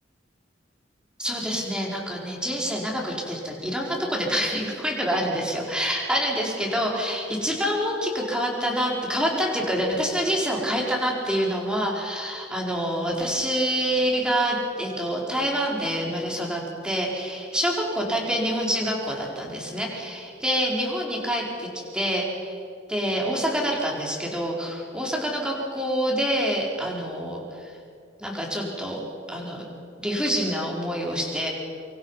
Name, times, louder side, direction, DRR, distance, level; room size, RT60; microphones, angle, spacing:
voice 1, 1.2-22.6 22.9-27.8 28.2-29.0 29.3-29.7 30.0-31.5, equal, 5° right, -2 dB, 4.8 m, -26 dB
26.5 x 25.5 x 5.8 m, 2.3 s
head